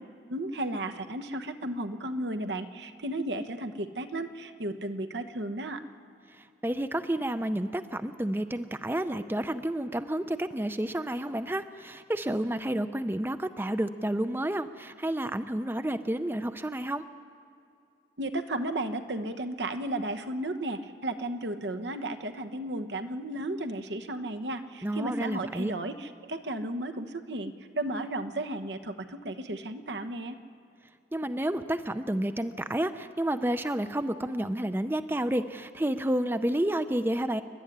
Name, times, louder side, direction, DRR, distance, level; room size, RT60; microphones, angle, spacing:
voice 1, 0.3-5.8 18.2-30.4, right 1 dB, 80° right, 7 dB, 1.2 m, -34 dB
voice 2, 6.3-17.0 24.8-25.7 31.1-37.4, right 1 dB, 10° right, 10 dB, 0.5 m, -30 dB
27.5 x 12.5 x 10.0 m, 2.5 s
head